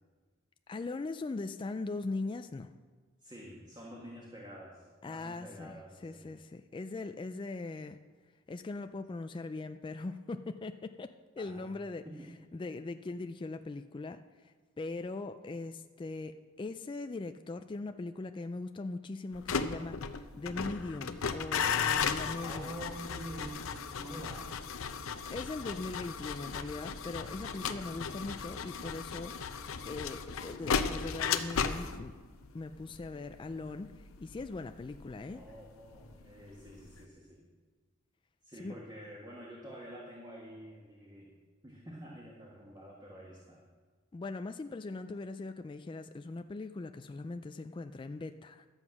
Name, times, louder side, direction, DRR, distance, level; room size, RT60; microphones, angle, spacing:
voice 1, 0.7-2.7 5.0-8.0 8.5-12.1 12.5-22.7 25.3-29.3 29.9-32.1 32.5-35.4 38.6-38.7 44.1-48.7, left 3 dB, 25° left, 8 dB, 0.3 m, -40 dB
voice 2, 3.2-6.3 11.4-11.8 12.0-12.3 22.4-24.5 27.7-27.8 35.3-37.4 38.4-41.3 41.6-43.6, equal, 20° right, -3 dB, 1.6 m, -47 dB
sound 1, 19.3-36.3 36.6-37.0, left 6 dB, 80° left, 0.7 m, -36 dB
12.5 x 8.0 x 6.0 m, 1.4 s
head